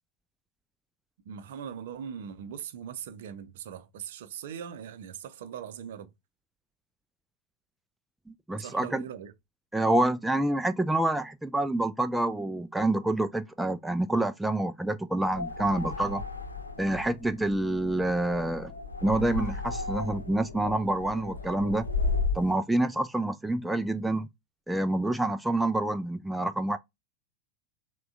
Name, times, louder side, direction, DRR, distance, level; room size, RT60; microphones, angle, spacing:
voice 1, 1.2-6.1 8.6-9.3, right 8 dB, 55° right, 0.6 m, -40 dB
voice 2, 8.5-9.0 9.7-16.2 16.8-18.7 19.0-21.9 22.3-24.3 24.7-26.8, right 1 dB, 5° right, 0.3 m, -27 dB
sound 1, 15.2-22.5, left 4 dB, 80° left, 0.7 m, -34 dB
5.9 x 2.2 x 2.3 m
figure-of-eight pair, 90°, 0 cm